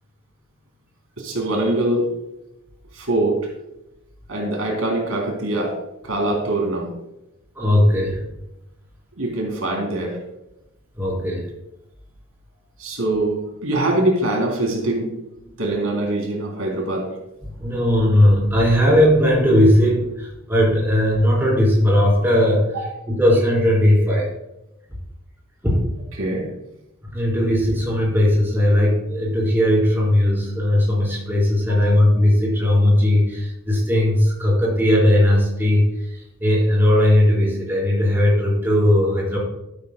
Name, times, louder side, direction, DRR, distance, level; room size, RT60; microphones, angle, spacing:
voice 1, 1.2-2.1 2.9-3.5 4.3-5.7 6.0-6.9 9.2-10.2 12.8-15.1 15.6-17.1 22.7-22.9 26.2-26.5 31.7-32.0, right 2 dB, 80° right, 0 dB, 3.2 m, -23 dB
voice 2, 7.6-8.2 11.0-11.5 17.5-22.7 23.1-24.3 25.6-25.8 27.1-39.4, left 1 dB, 10° right, -5 dB, 4.0 m, -18 dB
12.0 x 12.0 x 2.2 m, 0.89 s
head